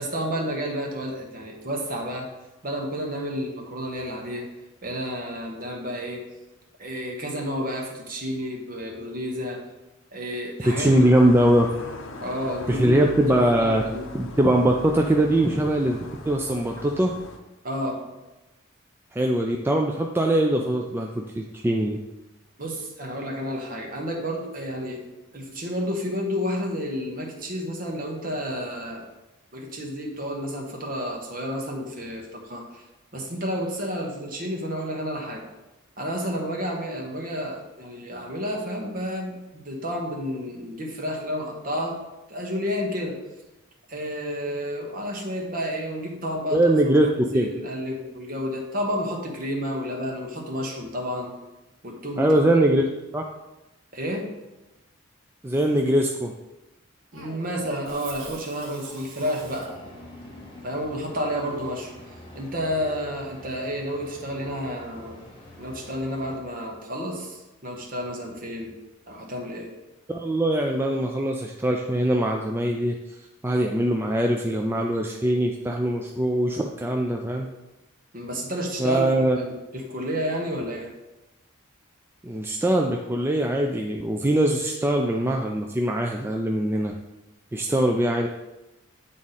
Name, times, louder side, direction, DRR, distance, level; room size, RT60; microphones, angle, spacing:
voice 1, 0.0-2.3 2.6-4.5 4.8-6.3 6.8-9.6 10.1-11.3 12.2-14.1 17.6-18.1 22.6-25.0 25.3-29.0 29.5-32.8 33.1-35.4 36.0-39.4 39.6-42.0 42.3-43.2 43.9-46.6 47.1-51.3 51.8-52.3 53.9-54.3 57.1-59.7 60.6-61.9 62.3-65.2 65.6-68.7 69.1-69.7 78.1-80.9, equal, 45° right, 0 dB, 1.3 m, -31 dB
sound 1, 10.6-17.4, left 2 dB, 75° left, 0.7 m, -39 dB
voice 2, 10.7-11.7 12.7-13.8 14.1-17.1 19.1-22.0 46.5-47.1 47.3-47.5 52.2-52.9 53.1-53.2 55.4-56.3 70.1-73.0 73.4-77.5 78.8-79.4 82.2-87.0 87.5-88.3, right 1 dB, 10° right, 1 dB, 0.3 m, -22 dB
Cough, 57.1-60.1, right 2 dB, 75° right, 1.4 m, -43 dB
sound 2, 59.2-66.4, equal, 25° left, 1.3 m, -45 dB
8.7 x 3.7 x 4.1 m, 1.0 s
head